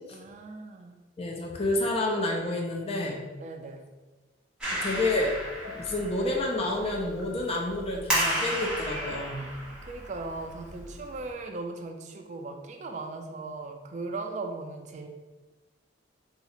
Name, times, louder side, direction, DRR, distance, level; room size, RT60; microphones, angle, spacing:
voice 1, 0.1-0.9 3.4-3.8 9.3-15.1, right 3 dB, 40° right, 5 dB, 0.4 m, -38 dB
voice 2, 1.2-3.2 4.7-5.3 5.7-9.5, left 2 dB, 30° left, 0 dB, 0.5 m, -29 dB
Clapping, 4.6-11.3, right 1 dB, 5° right, 1.1 m, -34 dB
sound 1, 5.1-5.2 5.6-6.0 6.7-6.8 7.2-7.7 8.3-8.4 8.9-9.5, left 2 dB, 80° left, 1.2 m, -46 dB
2.8 x 2.4 x 4.1 m, 1.2 s
head